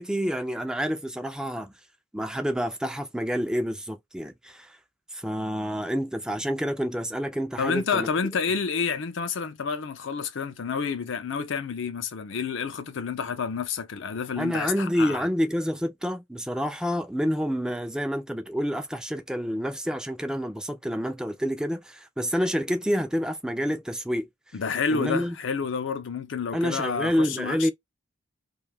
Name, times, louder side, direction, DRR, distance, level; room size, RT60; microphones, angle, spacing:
voice 1, 0.0-1.7 2.1-4.8 5.1-8.1 14.4-24.3 24.9-25.4 26.5-27.7, equal, 5° right, 0.3 m, -28 dB
voice 2, 7.6-15.3 24.5-27.7, left 5 dB, 70° left, 0.5 m, -29 dB
2.5 x 2.3 x 3.3 m
head